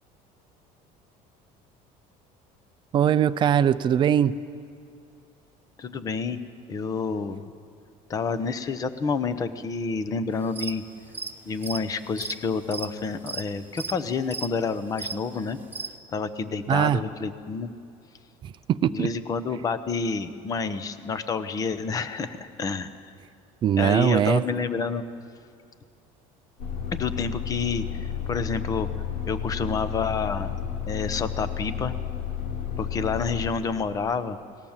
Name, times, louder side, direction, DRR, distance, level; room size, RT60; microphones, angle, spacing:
voice 1, 2.9-4.3 16.7-17.0 18.4-19.1 23.6-24.4, right 9 dB, 30° right, 13 dB, 0.6 m, -21 dB
voice 2, 5.8-6.4 6.7-7.4 8.1-10.8 11.5-15.6 16.1-17.7 18.9-23.1 23.8-25.0 26.9-28.9 29.3-30.5 30.9-31.9 32.8-34.4, left 5 dB, 25° left, 11 dB, 1.0 m, -29 dB
sound 1, 10.3-10.8 11.1-15.9, right 4 dB, 10° right, 1.0 m, -35 dB
sound 2, 26.6-33.5, left 8 dB, 85° left, 3.6 m, -32 dB
30.0 x 19.5 x 7.4 m, 2.5 s
cardioid pair, 175°, 16 cm